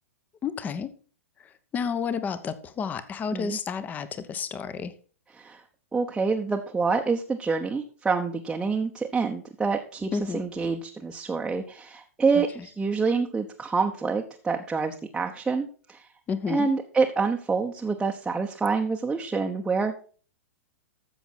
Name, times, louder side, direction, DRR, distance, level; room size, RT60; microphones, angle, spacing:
voice 1, 0.4-0.9 1.7-4.9 10.1-10.4 12.4-12.5 16.3-16.7, left 6 dB, 20° left, 14 dB, 1.1 m, -30 dB
voice 2, 5.9-16.1 16.5-19.9, right 4 dB, 10° right, 1 dB, 1.0 m, -27 dB
13.5 x 7.1 x 4.5 m, 0.40 s
figure-of-eight pair, 100°, 8 cm